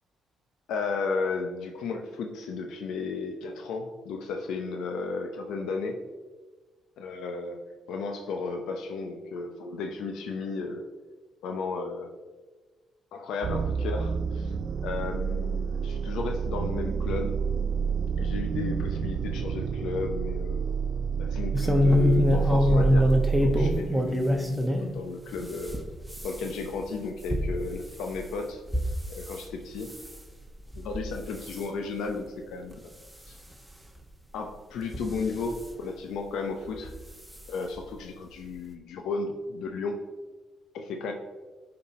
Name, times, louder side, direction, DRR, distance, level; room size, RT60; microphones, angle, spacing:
voice 1, 0.7-6.0 7.0-7.6 7.9-10.8 11.4-12.1 13.1-14.5 14.8-17.4 18.2-20.7 21.2-25.8 26.2-28.6 29.1-29.9 30.8-32.9 33.3-33.4 34.3-36.9 37.5-40.0 40.7-41.1, left 4 dB, 85° left, 4 dB, 0.7 m, -34 dB
sound 1, 13.4-23.8, right 6 dB, 60° right, 0.3 m, -29 dB
sound 2, 21.5-24.9 25.3-29.4 29.8-30.2 30.7-31.1 31.4-31.7 32.3-32.4 32.7-32.8 34.0-34.1 34.8-35.6 36.8-37.0 37.3-37.4 37.8-37.9, left 1 dB, 5° right, 1.1 m, -25 dB
9.6 x 4.4 x 4.2 m, 1.3 s
cardioid pair, 90°, 0 cm